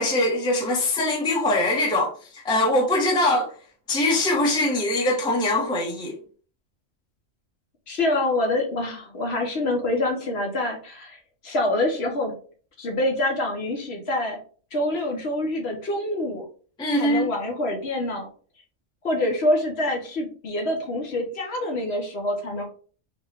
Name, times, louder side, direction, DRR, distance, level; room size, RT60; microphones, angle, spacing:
voice 1, 0.0-2.1 2.4-3.5 3.9-6.1 16.8-17.3, left 1 dB, 5° left, 0.6 m, -22 dB
voice 2, 7.9-12.3 12.8-14.4 14.7-16.4 17.0-18.3 19.0-22.6, left 1 dB, 55° left, 1.0 m, -26 dB
3.8 x 2.2 x 3.4 m
omnidirectional pair, 1.4 m